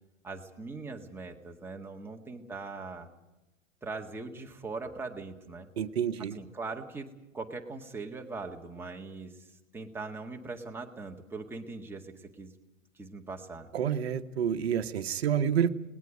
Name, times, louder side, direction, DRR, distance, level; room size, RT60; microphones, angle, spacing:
voice 1, 0.2-3.1 3.8-5.7 6.3-7.1 7.3-9.5 9.7-12.5 13.0-13.7, right 3 dB, 5° right, 2 dB, 1.8 m, -41 dB
voice 2, 5.8-6.4 13.7-15.7, right 8 dB, 50° right, 9 dB, 1.3 m, -28 dB
30.0 x 19.5 x 5.2 m, 0.98 s
figure-of-eight pair, 110°, 39 cm